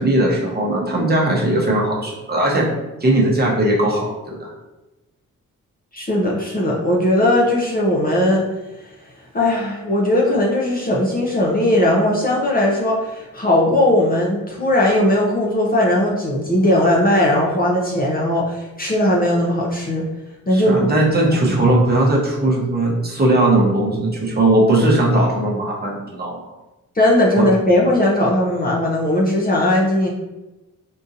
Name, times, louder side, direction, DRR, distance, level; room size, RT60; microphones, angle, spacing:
voice 1, 0.0-2.7 3.0-4.5 20.5-26.4 27.3-27.5, right 1 dB, 30° right, -3 dB, 0.8 m, -18 dB
voice 2, 5.9-8.4 8.8-8.9 9.3-20.0 20.5-20.7 27.0-30.1, left 1 dB, 30° left, -3 dB, 0.5 m, -18 dB
3.7 x 2.6 x 2.6 m, 1.0 s
wide cardioid pair, 130°, 32 cm